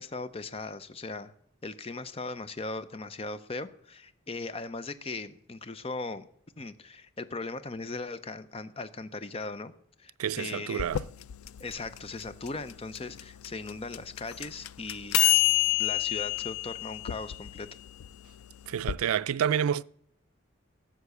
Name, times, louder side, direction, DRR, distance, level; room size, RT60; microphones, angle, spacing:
voice 1, 0.0-1.3 1.6-6.3 6.6-9.7 10.0-10.9 11.6-15.4 15.8-17.7, left 3 dB, 25° left, 0.5 m, -38 dB
voice 2, 10.2-11.0 18.7-19.8, right 8 dB, 90° right, 0.4 m, -28 dB
sound 1, 10.8-18.9, left 15 dB, 90° left, 0.4 m, -29 dB
13.0 x 7.4 x 6.8 m
head